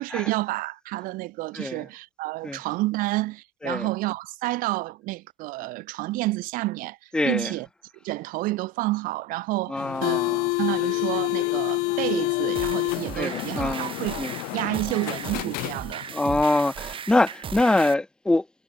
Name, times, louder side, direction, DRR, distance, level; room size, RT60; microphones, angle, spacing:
voice 1, 0.0-7.7 8.0-14.1 14.5-16.0, right 19 dB, 75° right, 3.1 m, -29 dB
voice 2, 1.5-1.8 2.4-2.6 3.6-3.9 7.1-7.5 9.7-10.5 13.1-14.3 16.1-18.5, left 2 dB, 5° left, 0.6 m, -24 dB
sound 1, 9.8-16.2, left 24 dB, 80° left, 1.8 m, -28 dB
sound 2, 12.6-17.9, right 8 dB, 35° right, 1.6 m, -37 dB
cardioid pair, 110°, 14 cm